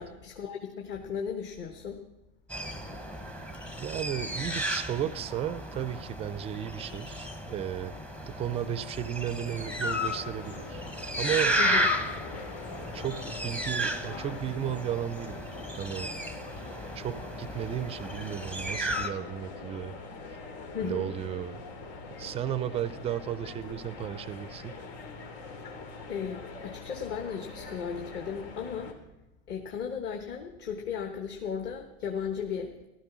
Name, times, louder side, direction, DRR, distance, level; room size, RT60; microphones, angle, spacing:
voice 1, 0.0-2.0 11.6-11.8 20.7-21.1 26.1-29.0 29.5-32.7, left 7 dB, 35° left, 4 dB, 1.2 m, -35 dB
sound 1, 2.5-19.1, equal, 5° left, 0.8 m, -33 dB
voice 2, 3.8-7.9 8.3-10.9 11.2-11.6 12.0-12.2 12.9-16.1 17.0-19.9 20.8-21.6 22.2-24.8, right 10 dB, 20° right, 16 dB, 0.4 m, -34 dB
sound 2, 9.4-28.9, left 4 dB, 85° left, 2.8 m, -44 dB
15.0 x 12.5 x 6.1 m, 0.96 s
supercardioid pair, 150°, 31 cm